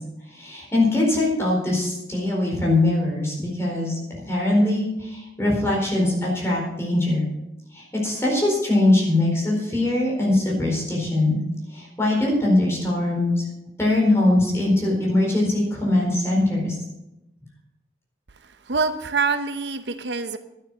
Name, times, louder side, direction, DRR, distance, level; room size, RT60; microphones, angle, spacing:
voice 1, 0.3-4.0 4.2-7.3 7.7-11.4 11.7-13.4 13.8-16.8, left 2 dB, 15° left, -3 dB, 4.3 m, -22 dB
voice 2, 18.4-20.4, right 4 dB, 75° right, 10 dB, 0.8 m, -25 dB
12.0 x 9.5 x 6.3 m, 0.93 s
head